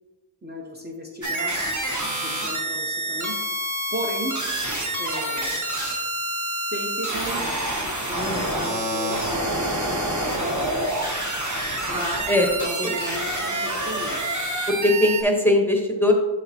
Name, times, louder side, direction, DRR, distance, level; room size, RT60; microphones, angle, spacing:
voice 1, 0.4-1.8 2.2-3.4 3.9-4.4 5.0-5.5 6.7-10.9 11.9-14.3, equal, 20° right, -1 dB, 0.9 m, -34 dB
sound 1, 1.2-15.2, right 1 dB, 40° right, 1.4 m, -27 dB
voice 2, 14.7-16.1, left 2 dB, 5° left, 1 dB, 1.0 m, -20 dB
12.0 x 4.2 x 2.8 m, 1.3 s
wide cardioid pair, 55°, 45 cm